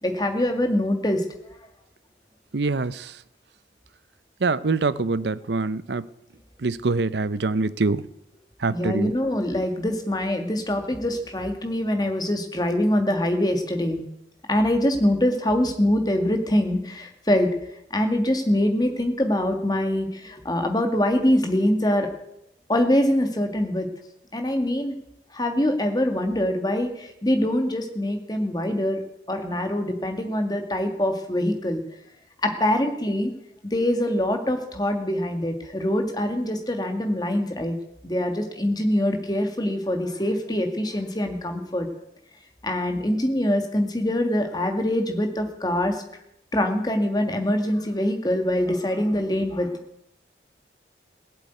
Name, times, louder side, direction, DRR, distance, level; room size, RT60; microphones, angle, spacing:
voice 1, 0.0-1.2 8.7-14.0 14.5-17.5 17.9-22.1 22.7-23.9 24.3-24.9 25.3-29.0 29.3-31.8 32.4-33.3 33.6-37.7 38.0-41.9 42.6-46.0 46.5-49.7, left 1 dB, 20° left, 5 dB, 1.8 m, -24 dB
voice 2, 2.5-3.1 4.4-6.1 6.6-8.0 8.6-9.1, right 3 dB, 70° right, 17 dB, 0.7 m, -24 dB
16.5 x 8.1 x 9.3 m, 0.80 s
head